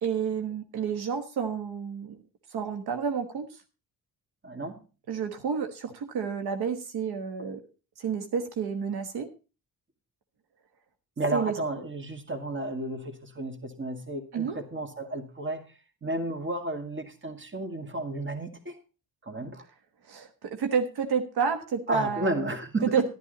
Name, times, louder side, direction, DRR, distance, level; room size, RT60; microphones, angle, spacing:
voice 1, 0.0-2.2 2.5-3.5 5.1-7.6 8.0-9.3 11.3-11.5 14.3-14.6 20.1-22.5 22.9-23.1, right 6 dB, 80° right, 7 dB, 1.3 m, -30 dB
voice 2, 4.4-4.8 11.2-15.6 16.0-18.8 19.2-19.7 21.9-23.1, right 2 dB, 30° right, 7 dB, 2.2 m, -32 dB
12.0 x 11.0 x 4.0 m, 0.33 s
cardioid pair, 100°, 38 cm